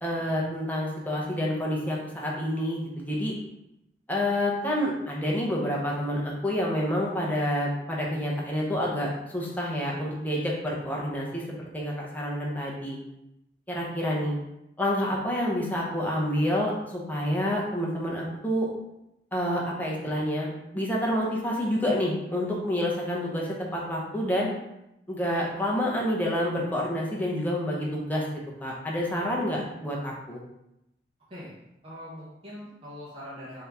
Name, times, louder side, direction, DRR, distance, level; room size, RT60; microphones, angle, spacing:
voice 1, 0.0-3.3 4.1-13.0 13.7-14.3 14.8-18.7 19.3-24.5 25.1-28.2 28.6-30.4, equal, 10° left, -3 dB, 0.7 m, -28 dB
voice 2, 31.8-33.7, equal, 30° right, -9 dB, 0.9 m, -42 dB
3.6 x 2.8 x 3.4 m, 0.88 s
head